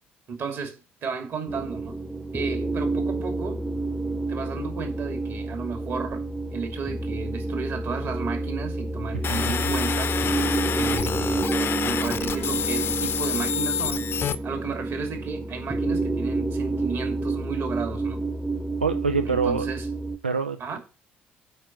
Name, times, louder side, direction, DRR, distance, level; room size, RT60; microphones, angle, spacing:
voice 1, 0.3-2.0 2.3-3.6 4.3-6.2 6.5-10.1 10.7-11.5 11.8-14.1 14.4-18.2 19.2-19.9 20.6-20.8, right 5 dB, 50° right, 2.6 m, -33 dB
sound 1, 1.5-20.2, right 2 dB, ahead, 0.9 m, -29 dB
sound 2, 9.2-14.3, left 8 dB, 45° left, 0.7 m, -28 dB
voice 2, 9.3-9.8 18.8-19.7 20.2-20.8, right 5 dB, 85° right, 0.4 m, -26 dB
8.5 x 5.2 x 7.5 m
figure-of-eight pair, 50°, 6 cm